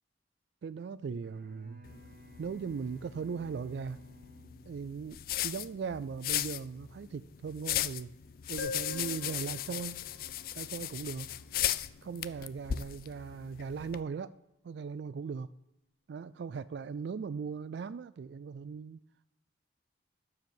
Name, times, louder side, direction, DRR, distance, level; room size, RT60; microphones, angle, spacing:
voice 1, 0.6-1.9 2.4-4.0 4.7-8.1 8.5-10.0 10.6-11.3 12.0-14.4 14.6-15.5 16.1-19.0, right 5 dB, 70° right, 0.3 m, -39 dB
Bowed string instrument, 1.1-5.5, left 1 dB, 45° right, 1.3 m, -57 dB
sound 1, 1.8-14.0, left 12 dB, 50° left, 0.3 m, -37 dB
sound 2, 8.6-12.1, left 3 dB, 75° left, 1.6 m, -45 dB
12.5 x 4.8 x 7.2 m
head